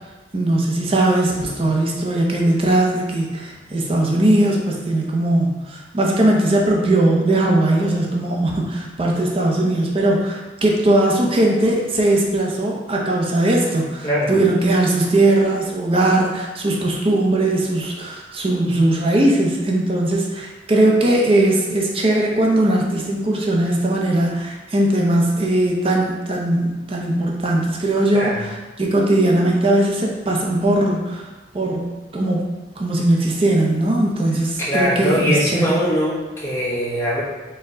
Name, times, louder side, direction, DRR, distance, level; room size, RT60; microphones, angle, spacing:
voice 1, 0.3-31.3 31.5-31.8 32.1-32.4 32.8-35.6, right 1 dB, 30° right, -1 dB, 0.5 m, -19 dB
voice 2, 34.6-37.2, equal, 15° left, -7 dB, 0.9 m, -21 dB
4.3 x 2.1 x 3.7 m, 1.2 s
head